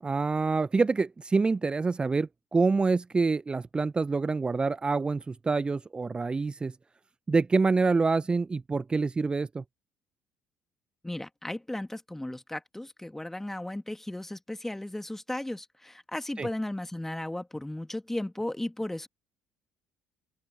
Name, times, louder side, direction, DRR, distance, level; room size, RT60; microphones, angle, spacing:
voice 1, 0.0-6.7 7.3-9.6 16.4-16.5, right 4 dB, 25° right, 1.0 m, -26 dB
voice 2, 11.0-19.1, left 1 dB, 10° left, 2.8 m, -35 dB
open air
figure-of-eight pair, 50°, 4 cm